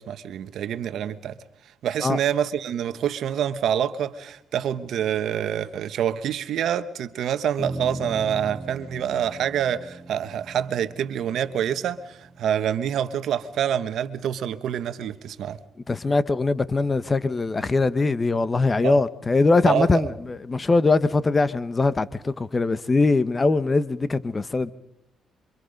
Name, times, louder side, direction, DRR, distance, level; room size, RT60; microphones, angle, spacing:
voice 1, 0.0-1.4 1.8-15.6 18.8-19.0 19.6-20.1, right 9 dB, 70° right, 1.2 m, -26 dB
sound 1, 7.6-14.1, right 2 dB, 10° right, 5.4 m, -39 dB
voice 2, 15.9-24.7, left 3 dB, 25° left, 1.0 m, -22 dB
27.5 x 25.0 x 5.3 m
cardioid pair, 90°, 0 cm